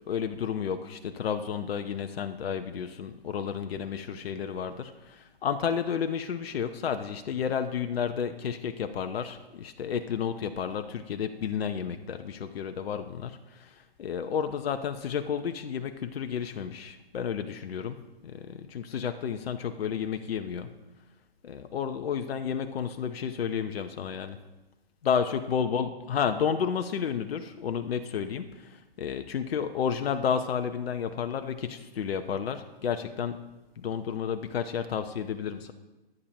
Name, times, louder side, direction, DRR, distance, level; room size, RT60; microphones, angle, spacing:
voice 1, 0.1-20.8 21.4-24.4 25.0-33.4 33.8-35.7, left 7 dB, 70° left, 8 dB, 0.8 m, -31 dB
23.0 x 8.9 x 2.9 m, 1.1 s
hypercardioid pair, 135°, 31 cm